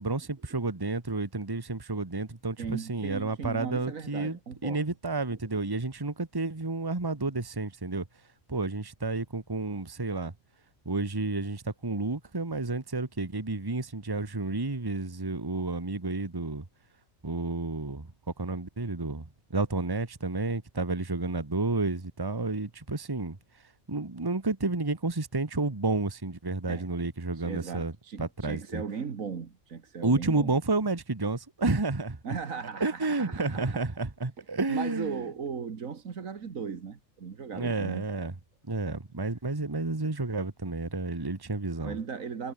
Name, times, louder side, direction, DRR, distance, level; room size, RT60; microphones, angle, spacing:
voice 1, 0.0-8.0 8.5-10.3 10.8-16.6 17.2-18.1 18.4-23.4 23.9-27.9 28.2-28.8 30.0-32.4 32.8-35.2 37.5-38.3 38.7-42.0, right 3 dB, 15° right, 1.5 m, -31 dB
voice 2, 2.6-4.8 26.7-26.9 27.3-30.5 32.2-33.8 34.4-38.1 41.8-42.5, right 6 dB, 75° right, 2.1 m, -37 dB
omnidirectional pair, 1.4 m